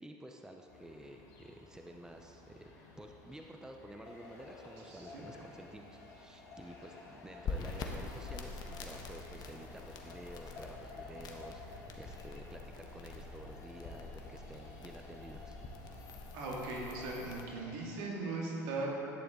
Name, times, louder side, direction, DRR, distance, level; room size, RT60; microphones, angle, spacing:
voice 1, 0.0-2.7 3.0-15.6, right 1 dB, 5° right, 2 dB, 0.8 m, -51 dB
sound 1, 0.7-17.9, left 2 dB, 75° left, 2.2 m, -58 dB
sound 2, 4.0-18.0, left 3 dB, 30° left, 2.4 m, -55 dB
voice 2, 4.9-5.2 16.3-18.9, right 3 dB, 65° right, -3 dB, 2.3 m, -39 dB
sound 3, 7.4-17.4, left 4 dB, 45° left, 1.2 m, -45 dB
11.5 x 9.5 x 3.9 m, 3.0 s
hypercardioid pair, 75°, 9 cm